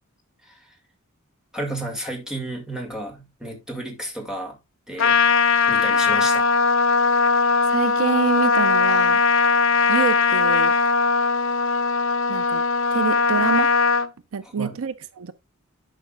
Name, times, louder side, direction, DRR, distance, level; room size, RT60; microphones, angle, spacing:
voice 1, 0.4-0.8 1.5-4.6 4.9-5.2 5.7-6.6 14.4-14.8, right 1 dB, 5° right, 2.1 m, -32 dB
Trumpet, 5.0-14.1, left 4 dB, 60° left, 0.6 m, -19 dB
voice 2, 7.6-9.2 9.9-10.7 12.3-12.6 12.9-13.7 14.3-15.3, right 6 dB, 75° right, 0.5 m, -26 dB
11.0 x 5.2 x 2.4 m
head